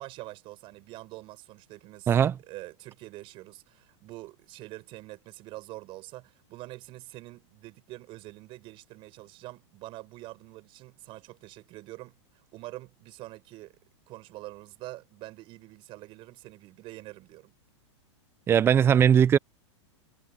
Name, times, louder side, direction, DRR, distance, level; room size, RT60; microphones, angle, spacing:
voice 1, 0.0-2.2 2.4-13.8 14.1-17.5, right 19 dB, 35° right, 7.5 m, -45 dB
voice 2, 18.5-19.4, right 8 dB, 15° right, 0.5 m, -19 dB
supercardioid pair, 155°, 16 cm